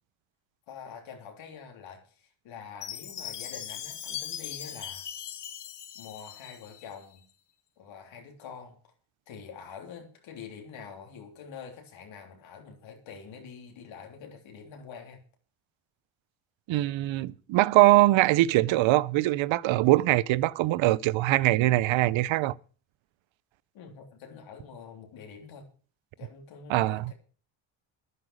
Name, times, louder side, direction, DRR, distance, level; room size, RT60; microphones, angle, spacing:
voice 1, 0.7-5.1 5.9-7.2 7.8-8.8 9.3-15.2 23.7-25.6 26.2-27.1, left 6 dB, 80° left, 3.3 m, -46 dB
Chime, 2.8-6.9, left 10 dB, 60° left, 1.4 m, -39 dB
voice 2, 16.7-22.5 26.7-27.1, right 17 dB, 80° right, 0.7 m, -22 dB
11.0 x 10.0 x 6.3 m
cardioid pair, 80°, 46 cm